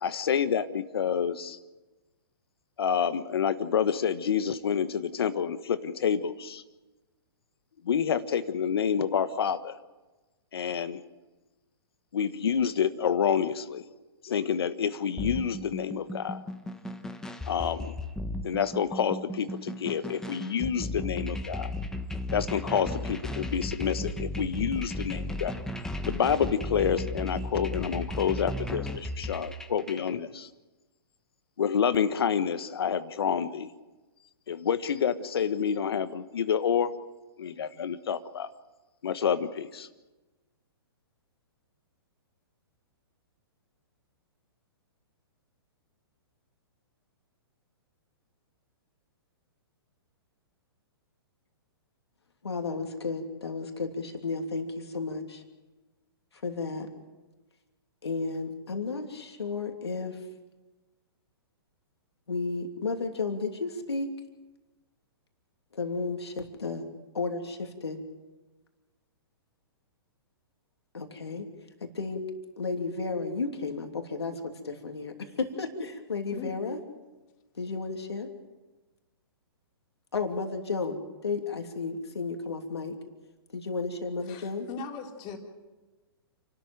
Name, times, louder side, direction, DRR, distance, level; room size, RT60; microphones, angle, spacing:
voice 1, 0.0-1.6 2.8-6.6 7.8-9.8 10.5-11.0 12.1-13.8 14.2-16.4 17.5-17.9 18.4-21.7 22.3-25.5 26.1-30.5 31.6-33.7 34.5-36.9 37.4-38.5 39.0-39.9, left 7 dB, 70° left, 12 dB, 1.4 m, -28 dB
sound 1, 15.2-30.1, left 1 dB, 5° left, 1.4 m, -35 dB
voice 2, 52.4-55.4 56.4-56.9 58.0-60.2 62.3-64.1 65.8-66.9 67.1-68.0 70.9-71.5 71.9-72.2 72.6-74.3 74.6-76.8 77.6-78.3 80.1-82.9 83.5-84.7, left 4 dB, 90° left, 4 dB, 3.0 m, -33 dB
voice 3, 84.2-85.4, left 5 dB, 35° left, 2 dB, 3.7 m, -40 dB
29.0 x 13.0 x 9.1 m, 1.2 s
hypercardioid pair, 130°, 13 cm